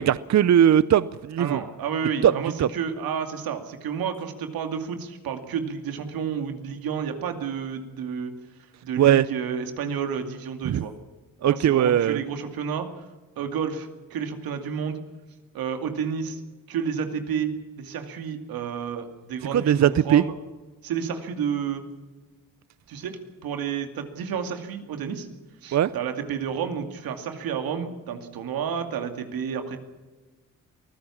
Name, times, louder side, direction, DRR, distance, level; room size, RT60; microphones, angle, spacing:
voice 1, 0.0-1.6 2.2-2.3 2.6-2.7 9.0-9.3 10.6-10.8 11.4-12.2 19.5-20.2 25.7-25.9, right 10 dB, 50° right, 17 dB, 0.7 m, -19 dB
voice 2, 1.4-8.3 8.8-10.9 11.5-13.1 13.4-15.0 15.5-16.4 16.7-20.3 20.8-21.8 22.9-25.3 25.6-29.8, right 7 dB, 80° right, 6 dB, 2.5 m, -30 dB
23.5 x 15.0 x 7.2 m, 1.2 s
supercardioid pair, 60°, 35 cm